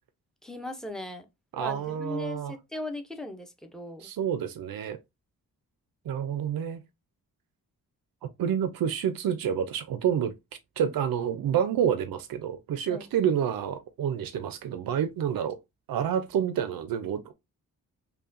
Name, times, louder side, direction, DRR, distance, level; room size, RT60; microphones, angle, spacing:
voice 1, 0.4-1.3 1.6-4.1 12.9-13.1, left 2 dB, ahead, 0.5 m, -38 dB
voice 2, 1.5-2.5 4.0-5.0 6.1-6.8 8.4-10.3 10.8-15.6 15.9-17.3, right 8 dB, 85° right, 0.5 m, -28 dB
5.4 x 2.2 x 2.5 m
wide cardioid pair, 135°, 34 cm